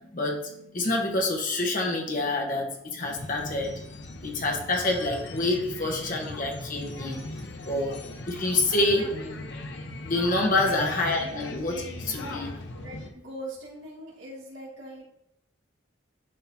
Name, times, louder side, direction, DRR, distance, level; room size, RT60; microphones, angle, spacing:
voice 1, 0.1-3.9 4.2-7.2 7.7-7.9 8.3-9.0 10.0-12.5, left 2 dB, 45° left, 0 dB, 1.3 m, -27 dB
sound 1, 3.0-13.1, left 2 dB, 65° left, 0.8 m, -39 dB
voice 2, 8.9-9.4 10.5-10.7 11.2-11.4 12.2-15.0, right 1 dB, 70° right, -4 dB, 2.5 m, -42 dB
11.0 x 4.0 x 2.9 m, 0.78 s
head